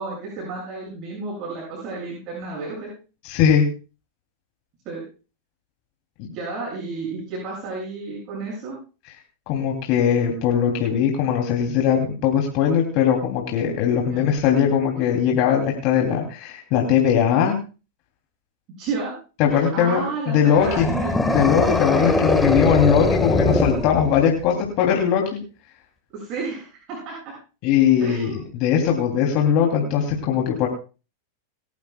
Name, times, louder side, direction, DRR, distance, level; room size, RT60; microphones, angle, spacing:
voice 1, 0.0-2.9 4.8-5.0 6.3-8.8 14.1-14.3 18.8-19.1 19.5-23.9 26.1-27.3 28.0-28.5, right 4 dB, 45° right, -4 dB, 7.5 m, -32 dB
voice 2, 3.2-3.6 6.2-6.3 9.5-17.5 19.4-20.0 20.3-20.9 21.3-25.2 27.6-30.7, left 8 dB, 50° left, 1 dB, 3.1 m, -20 dB
sound 1, 20.6-24.4, left 2 dB, 10° left, 1.7 m, -22 dB
27.0 x 12.0 x 2.4 m, 0.34 s
hypercardioid pair, 115°, 0 cm